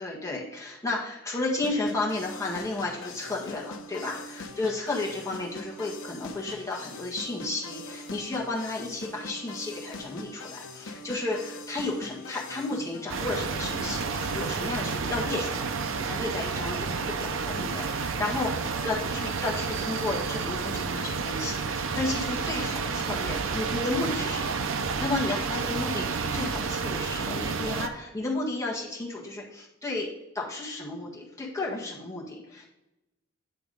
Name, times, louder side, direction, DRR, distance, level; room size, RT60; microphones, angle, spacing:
voice 1, 0.0-15.7 16.0-24.5 25.0-30.1 30.3-32.7, left 2 dB, 15° left, -3 dB, 1.5 m, -33 dB
sound 1, 1.6-14.6, left 2 dB, 70° left, 0.9 m, -42 dB
sound 2, 13.1-27.9, right 5 dB, 70° right, 0.6 m, -30 dB
9.0 x 3.5 x 5.2 m, 0.97 s
head